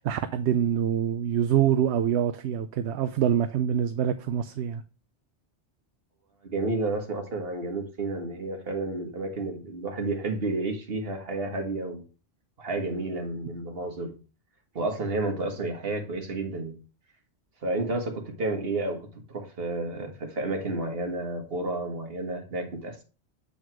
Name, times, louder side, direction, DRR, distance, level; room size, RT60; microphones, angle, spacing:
voice 1, 0.0-4.8, right 9 dB, 80° right, 0.8 m, -25 dB
voice 2, 6.4-12.0 12.6-14.1 14.7-16.8 17.6-23.0, right 2 dB, 60° right, 1.7 m, -31 dB
7.9 x 4.1 x 4.5 m
omnidirectional pair, 1.1 m